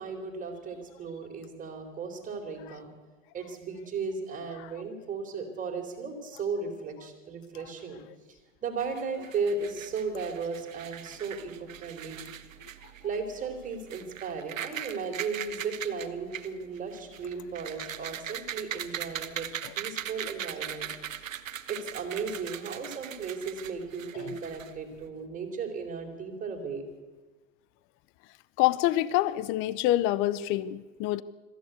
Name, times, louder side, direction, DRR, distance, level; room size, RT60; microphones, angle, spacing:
voice 1, 0.0-2.9 3.3-8.0 8.6-12.2 13.0-19.5 19.8-20.9 21.7-26.8, right 5 dB, 20° right, 4.0 m, -35 dB
sound 1, 8.8-25.1, right 10 dB, 85° right, 1.3 m, -40 dB
voice 2, 28.6-31.2, left 15 dB, 35° left, 0.7 m, -26 dB
22.0 x 14.5 x 8.2 m
hypercardioid pair, 120°, 38 cm